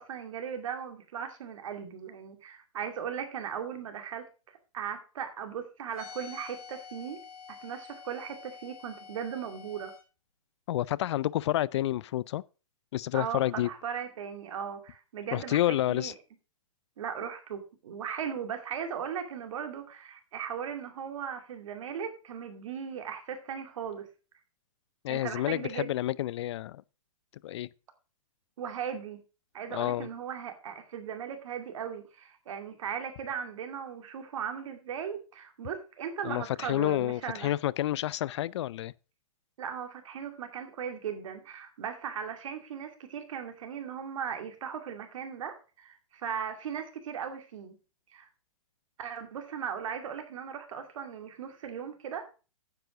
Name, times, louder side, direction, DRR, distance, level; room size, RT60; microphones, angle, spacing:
voice 1, 0.0-4.3 4.7-7.2 7.5-9.9 13.1-16.1 17.0-24.1 25.1-25.9 28.6-29.2 29.5-37.5 39.6-47.8 48.1-48.3 49.0-52.3, right 7 dB, 60° right, 2.5 m, -38 dB
sound 1, 5.9-10.0, left 6 dB, 85° left, 4.9 m, -48 dB
voice 2, 10.7-12.4 12.9-13.7 15.3-16.1 25.0-26.8 27.4-27.7 29.7-30.1 36.2-38.9, left 14 dB, 50° left, 0.4 m, -29 dB
9.6 x 7.8 x 5.0 m
hypercardioid pair, 130°, 18 cm